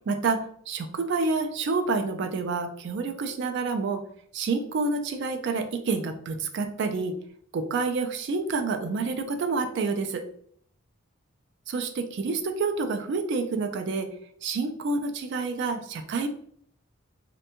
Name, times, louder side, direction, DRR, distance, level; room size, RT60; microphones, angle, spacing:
voice 1, 0.1-4.0 4.3-7.1 7.5-10.2 11.7-14.1 14.4-16.3, right 4 dB, 55° right, 6 dB, 0.3 m, -28 dB
2.5 x 2.2 x 2.8 m, 0.62 s
head